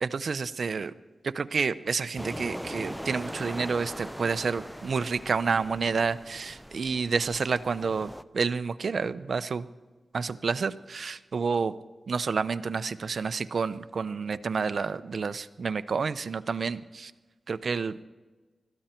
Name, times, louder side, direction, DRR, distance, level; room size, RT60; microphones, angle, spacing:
voice 1, 0.0-0.9 1.2-9.7 10.1-11.7 12.1-17.1 17.5-18.0, right 5 dB, 70° right, 14 dB, 0.7 m, -29 dB
sound 1, 2.2-8.2, equal, ahead, 0.6 m, -40 dB
21.0 x 14.5 x 4.4 m, 1.3 s
cardioid pair, 65°, 0 cm